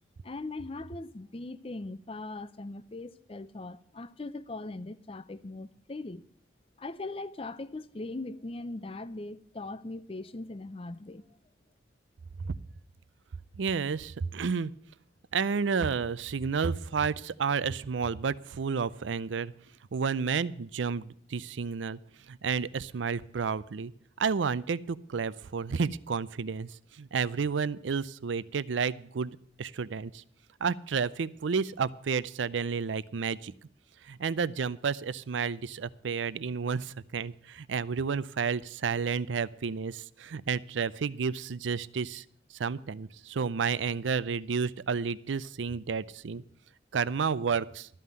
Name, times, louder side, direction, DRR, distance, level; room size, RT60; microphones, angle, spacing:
voice 1, 0.2-6.2 6.8-11.2, left 2 dB, 30° left, 0.5 m, -40 dB
voice 2, 13.6-14.7 15.3-19.5 19.9-22.0 22.3-23.9 24.2-30.2 30.6-33.5 34.0-42.2 42.6-46.4 46.9-47.9, right 5 dB, 90° right, 0.5 m, -31 dB
13.0 x 5.6 x 9.4 m
head